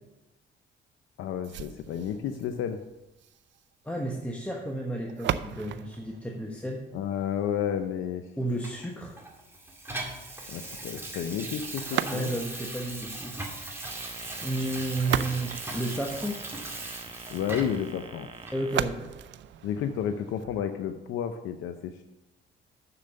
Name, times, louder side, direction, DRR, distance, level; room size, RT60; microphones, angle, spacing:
voice 1, 1.2-2.8 6.9-8.2 10.5-12.3 17.3-18.3 19.6-22.0, left 8 dB, 85° left, 8 dB, 0.6 m, -31 dB
sound 1, 1.4-7.4 11.8-12.7 14.7-16.6 18.6-20.6, right 11 dB, 65° right, 0.5 m, -36 dB
voice 2, 3.8-6.8 8.4-9.2 12.0-13.5 14.4-16.4 18.5-19.1, right 1 dB, 5° left, -1 dB, 1.2 m, -32 dB
Water tap faucet / Sink (filling or washing), 8.6-17.9 18.4-18.6, right 2 dB, 10° right, 2.0 m, -39 dB
sound 2, 13.8-18.8, right 4 dB, 25° right, 0.8 m, -46 dB
7.1 x 6.7 x 6.6 m, 0.99 s
cardioid pair, 90°, 20 cm